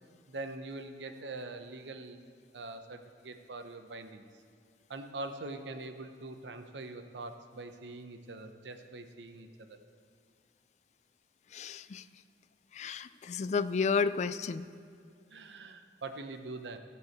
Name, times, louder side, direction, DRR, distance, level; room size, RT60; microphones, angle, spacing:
voice 1, 0.3-2.2 2.5-4.2 4.9-9.8 15.3-16.8, right 2 dB, 80° right, 7 dB, 0.8 m, -43 dB
voice 2, 11.5-12.0 12.7-14.7, left 5 dB, 40° left, 13 dB, 0.3 m, -32 dB
13.5 x 4.8 x 7.9 m, 2.3 s
head